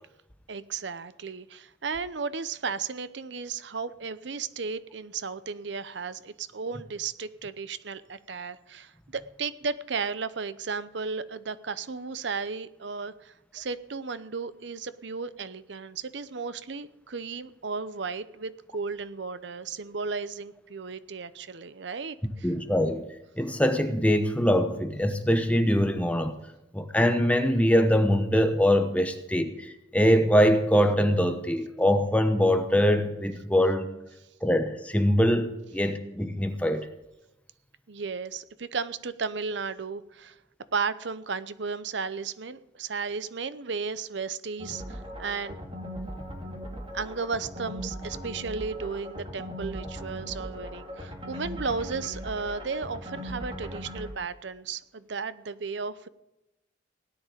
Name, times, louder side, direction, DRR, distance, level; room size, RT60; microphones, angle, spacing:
voice 1, 0.5-22.5 37.9-40.4 40.7-45.6 46.9-56.1, right 5 dB, 70° right, 15 dB, 0.8 m, -34 dB
voice 2, 22.4-23.0 23.4-26.4 26.7-33.9 34.4-36.9, equal, 5° left, 7 dB, 1.0 m, -23 dB
sound 1, 44.6-54.1, equal, 30° right, 2.1 m, -39 dB
17.5 x 9.9 x 5.1 m, 0.92 s
head